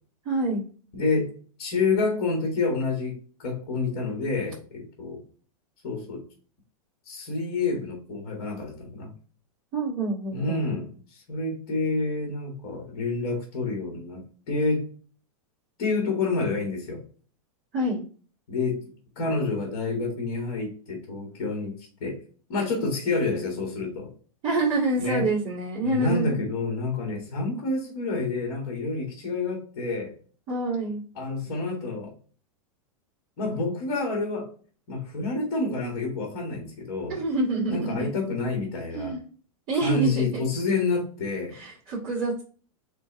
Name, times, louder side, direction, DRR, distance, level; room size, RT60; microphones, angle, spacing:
voice 1, 0.3-0.6 9.7-10.7 17.7-18.0 24.4-26.5 30.5-31.0 37.1-38.1 38.9-39.2 39.7-40.4 41.5-42.4, right 2 dB, 25° right, -10 dB, 1.7 m, -27 dB
voice 2, 0.9-1.3 1.6-5.2 5.8-6.2 7.0-9.1 10.3-14.2 14.5-14.9 15.8-17.0 18.5-18.8 19.1-21.7 22.0-22.2 22.5-24.1 25.0-25.3 25.8-30.1 31.1-32.1 33.4-34.5 34.9-37.2 37.7-39.1 39.8-41.5, left 3 dB, 40° left, 0 dB, 1.7 m, -28 dB
4.4 x 3.4 x 3.0 m, 0.41 s
supercardioid pair, 170°, 18 cm